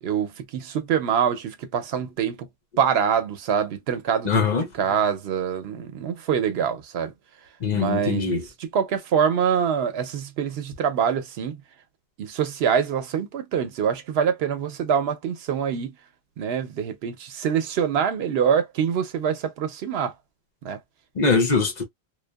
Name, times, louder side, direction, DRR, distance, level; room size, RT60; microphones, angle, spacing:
voice 1, 0.0-2.5 2.8-7.1 7.7-11.6 12.2-15.9 16.4-20.1 20.6-20.8, right 7 dB, 80° right, 0.8 m, -25 dB
voice 2, 4.2-4.7 7.6-8.4 21.2-21.8, left 4 dB, 50° left, 0.7 m, -22 dB
2.6 x 2.2 x 2.2 m
omnidirectional pair, 1.1 m